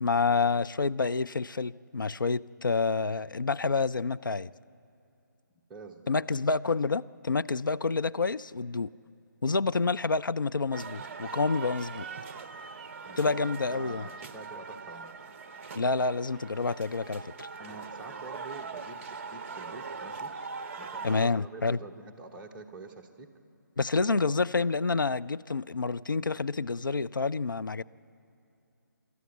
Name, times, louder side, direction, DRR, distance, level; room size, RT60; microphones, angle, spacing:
voice 1, 0.0-4.5 6.1-8.9 9.4-12.1 13.2-14.1 15.7-17.5 21.0-21.8 23.8-27.8, left 4 dB, 75° left, 14 dB, 0.4 m, -28 dB
voice 2, 5.7-6.3 13.1-13.4 13.7-15.1 17.6-20.3 20.8-23.3, right 3 dB, 10° right, 0 dB, 1.0 m, -46 dB
sound 1, 10.7-21.3, right 5 dB, 40° right, 0.7 m, -41 dB
26.0 x 13.0 x 8.1 m, 2.7 s
figure-of-eight pair, 140°, 11 cm